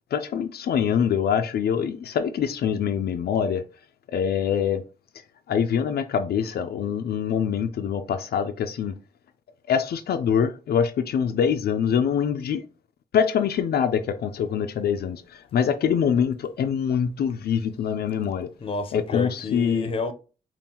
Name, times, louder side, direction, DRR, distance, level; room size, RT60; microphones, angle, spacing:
voice 1, 0.1-3.6 4.1-4.8 5.5-8.9 9.7-12.6 13.1-15.2 15.5-18.5 18.9-19.9, left 7 dB, 80° left, 0.4 m, -24 dB
voice 2, 18.6-20.1, left 3 dB, 35° left, 0.6 m, -29 dB
5.3 x 2.5 x 2.9 m
wide cardioid pair, 140°, 16 cm